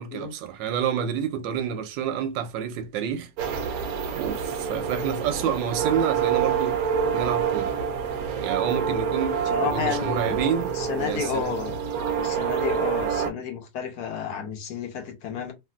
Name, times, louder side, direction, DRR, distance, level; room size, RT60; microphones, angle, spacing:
voice 1, 0.0-3.3 4.1-6.8 7.1-7.7 8.4-11.5, right 8 dB, 90° right, 1.3 m, -29 dB
sound 1, 3.4-13.3, right 7 dB, 65° right, 0.9 m, -27 dB
voice 2, 9.5-10.4 10.7-11.8 12.1-15.5, left 7 dB, 65° left, 1.1 m, -31 dB
3.2 x 2.5 x 2.3 m
omnidirectional pair, 2.0 m